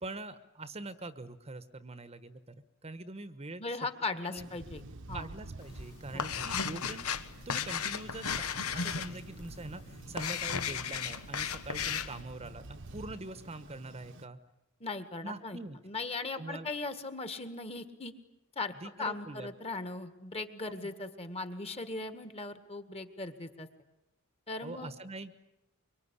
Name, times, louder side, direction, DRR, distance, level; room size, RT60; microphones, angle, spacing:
voice 1, 0.0-2.5 2.8-3.8 4.2-4.5 5.1-7.1 7.4-8.4 8.7-14.4 15.2-15.8 16.4-16.7 18.8-19.5 20.6-20.9 24.6-25.3, right 2 dB, 30° right, 12 dB, 1.1 m, -43 dB
voice 2, 3.6-4.8 5.1-5.3 6.1-6.2 14.8-15.6 15.8-18.1 18.6-23.7 24.5-24.9, left 3 dB, 30° left, 10 dB, 1.9 m, -38 dB
Thunder, 4.4-14.3, right 2 dB, 60° right, 1.1 m, -49 dB
sound 1, 5.6-12.2, left 7 dB, 90° left, 1.3 m, -36 dB
25.0 x 23.5 x 9.9 m, 0.89 s
head